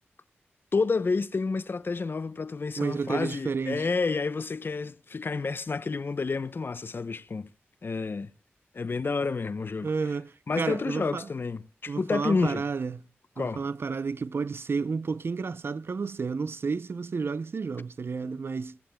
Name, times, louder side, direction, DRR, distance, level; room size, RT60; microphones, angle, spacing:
voice 1, 0.7-7.5 7.8-8.3 8.7-9.9 10.5-12.6 13.4-13.6, left 4 dB, 55° left, 0.7 m, -29 dB
voice 2, 2.8-3.9 9.8-11.3 11.9-13.0 13.4-18.8, right 5 dB, 60° right, 0.6 m, -31 dB
21.5 x 15.5 x 2.3 m
cardioid pair, 65°, 4 cm